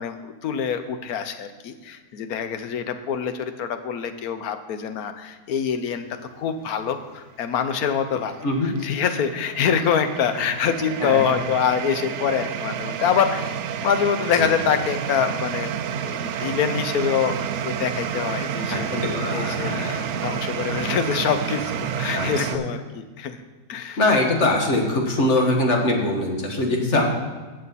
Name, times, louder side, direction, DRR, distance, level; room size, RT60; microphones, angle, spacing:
voice 1, 0.0-18.9 19.1-23.4 23.7-24.0, left 7 dB, 75° left, 9 dB, 1.2 m, -25 dB
sound 1, 7.9-22.6, right 8 dB, 65° right, 0.7 m, -30 dB
voice 2, 11.0-11.4 14.4-14.5 18.7-20.0 22.1-22.6 24.0-27.0, left 2 dB, 50° left, 1 dB, 1.7 m, -22 dB
15.5 x 6.4 x 4.1 m, 1.3 s
omnidirectional pair, 1.6 m